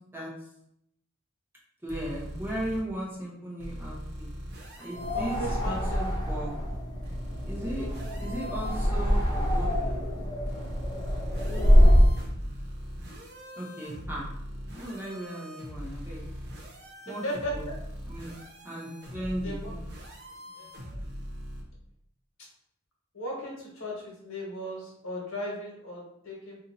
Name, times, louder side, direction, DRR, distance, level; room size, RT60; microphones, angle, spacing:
voice 1, 1.8-4.3 4.8-6.5 7.4-7.9 8.2-10.1 13.6-14.3 14.7-16.2 17.1-17.2 17.5-17.6 18.1-18.3 18.6-19.8, right 1 dB, 10° right, -5 dB, 0.9 m, -36 dB
sound 1, 1.9-2.8 3.6-6.2 7.0-9.7 10.5-21.6, equal, 55° right, 0.8 m, -41 dB
sound 2, 4.9-12.2, equal, 20° left, 0.8 m, -24 dB
voice 2, 5.1-6.0 7.7-8.0 11.4-12.1 17.1-17.7 19.4-19.7 20.5-21.0 23.1-26.6, equal, 75° left, -2 dB, 1.3 m, -37 dB
2.8 x 2.6 x 3.9 m, 0.74 s
head